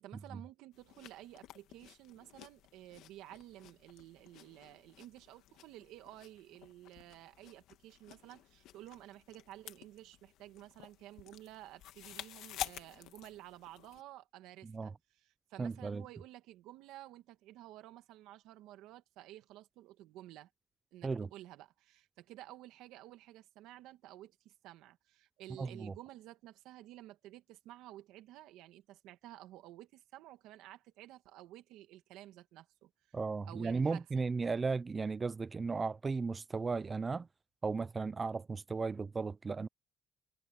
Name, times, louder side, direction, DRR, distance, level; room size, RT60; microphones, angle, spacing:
voice 1, 0.0-20.5 20.9-33.2 33.4-34.2, right 14 dB, 85° right, 2.0 m, -53 dB
sound 1, 0.7-14.0, left 13 dB, 75° left, 1.7 m, -51 dB
voice 2, 15.6-16.0 21.0-21.3 25.6-25.9 33.1-37.3 37.6-39.7, right 4 dB, 20° right, 0.4 m, -35 dB
cardioid pair, 145°, 0 cm